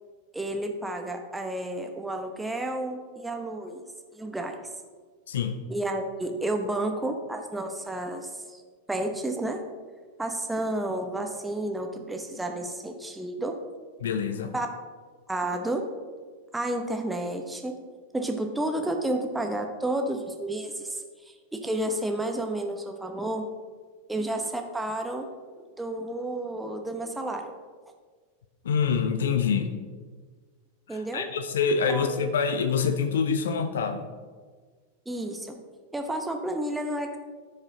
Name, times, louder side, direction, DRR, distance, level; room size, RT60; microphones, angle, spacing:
voice 1, 0.3-3.8 4.1-4.6 5.7-8.6 8.9-9.6 10.2-13.5 14.5-14.7 15.3-15.8 16.5-17.7 18.1-23.5 24.1-25.2 25.6-27.5 30.9-31.2 31.9-32.2 35.1-35.6 35.9-37.2, right 1 dB, 5° right, 4 dB, 0.9 m, -31 dB
voice 2, 5.3-5.6 14.0-14.5 28.6-29.8 30.9-34.1, left 6 dB, 65° left, 10 dB, 0.6 m, -26 dB
14.5 x 5.0 x 2.8 m, 1.6 s
figure-of-eight pair, 90°, 0 cm